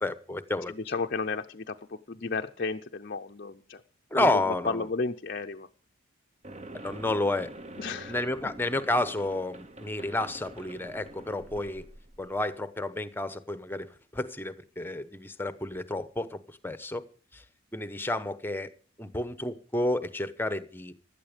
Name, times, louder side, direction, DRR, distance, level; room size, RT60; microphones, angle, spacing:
voice 1, 0.0-0.7 4.1-4.8 6.7-7.5 8.1-11.8 12.2-13.9 14.1-17.0 17.3-17.4 17.7-18.7 19.0-20.9, left 2 dB, 10° left, 0.9 m, -30 dB
voice 2, 0.7-3.8 4.1-5.7 7.8-8.1, left 4 dB, 40° left, 0.6 m, -33 dB
sound 1, 6.4-12.4, right 1 dB, 30° right, 0.9 m, -46 dB
16.5 x 12.0 x 5.1 m
head